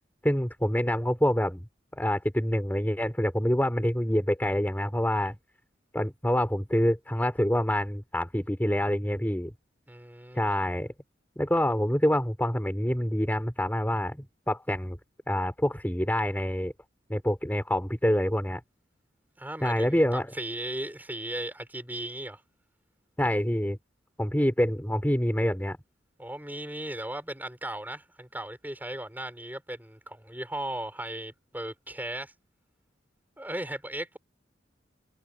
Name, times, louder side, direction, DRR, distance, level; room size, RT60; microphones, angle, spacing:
voice 1, 0.2-1.6 1.9-5.4 5.9-9.5 10.3-10.9 11.4-15.0 15.3-16.7 17.1-18.6 19.6-20.3 23.2-23.8 24.2-25.8, equal, 10° left, 3.1 m, -26 dB
voice 2, 9.9-10.5 19.4-22.4 26.2-32.3 33.4-34.2, right 1 dB, 10° right, 5.6 m, -37 dB
head